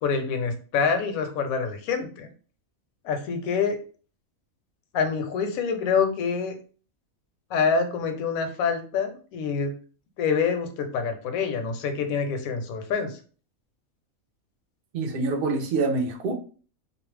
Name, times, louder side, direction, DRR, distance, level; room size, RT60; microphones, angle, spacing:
voice 1, 0.0-2.3 3.0-3.8 4.9-6.6 7.5-9.8 10.2-13.2, left 5 dB, 75° left, 1.0 m, -26 dB
voice 2, 14.9-16.3, right 3 dB, 65° right, 0.5 m, -26 dB
2.5 x 2.1 x 3.2 m
omnidirectional pair, 1.5 m